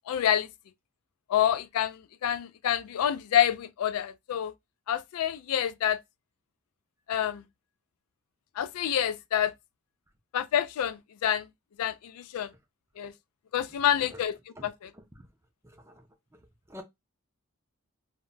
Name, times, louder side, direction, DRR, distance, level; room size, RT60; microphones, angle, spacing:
voice 1, 0.1-0.5 1.3-4.5 4.9-6.0 7.1-7.4 8.6-9.5 10.3-11.4 11.8-12.5 13.0-13.1 13.5-14.3 14.6-14.7, left 10 dB, 75° left, 0.3 m, -27 dB
voice 2, 13.7-14.2 14.6-14.7 14.9-15.3 15.6-16.1 16.3-16.8, equal, 10° right, 0.4 m, -49 dB
2.2 x 2.1 x 3.7 m
head